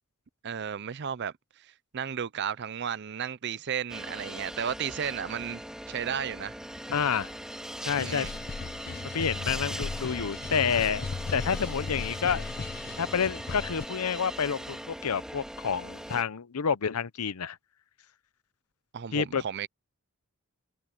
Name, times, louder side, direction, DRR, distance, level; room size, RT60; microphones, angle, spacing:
voice 1, 0.4-6.6 8.0-8.3 18.9-19.7, right 8 dB, 50° right, 0.5 m, -34 dB
sound 1, 3.9-16.2, equal, 5° right, 2.1 m, -40 dB
voice 2, 6.9-7.3 7.8-8.3 9.1-12.5 13.0-17.6 19.1-19.4, left 6 dB, 85° left, 0.7 m, -29 dB
sound 2, 7.9-13.9, left 4 dB, 45° left, 0.4 m, -37 dB
head